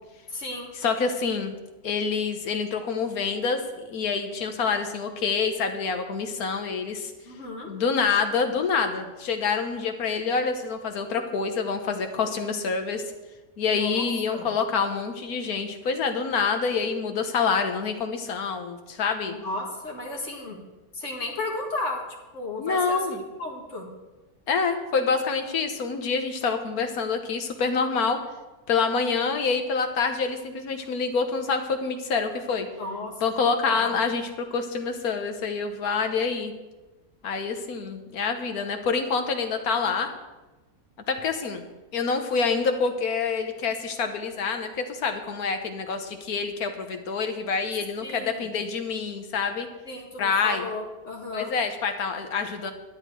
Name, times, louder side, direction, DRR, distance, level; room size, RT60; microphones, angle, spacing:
voice 1, 0.3-0.7 7.3-7.7 13.7-14.5 19.3-20.6 20.9-22.0 22.3-23.0 23.4-23.9 32.8-33.1 33.4-34.0 48.0-48.5 49.9-51.5, left 2 dB, 50° left, -1 dB, 2.1 m, -34 dB
voice 2, 0.8-1.5 1.8-7.1 7.7-13.0 13.6-19.3 22.6-23.2 24.5-28.2 28.7-32.7 33.2-36.5 37.2-40.1 41.1-41.6 41.9-49.7 50.2-50.7 51.3-52.7, left 5 dB, 65° left, 6 dB, 1.5 m, -27 dB
11.0 x 9.7 x 4.7 m, 1.1 s
omnidirectional pair, 1.7 m